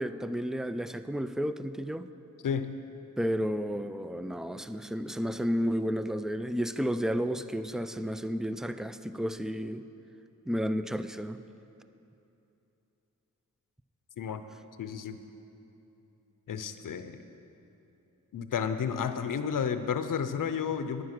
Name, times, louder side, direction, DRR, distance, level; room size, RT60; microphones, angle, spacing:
voice 1, 0.0-2.1 3.2-9.8 10.5-11.4, equal, ahead, 12 dB, 0.3 m, -32 dB
voice 2, 2.4-2.8 14.2-14.4 14.8-15.2 16.5-17.1 18.3-21.0, left 7 dB, 80° left, 10 dB, 0.6 m, -31 dB
10.5 x 9.6 x 5.9 m, 2.9 s
wide cardioid pair, 75°, 32 cm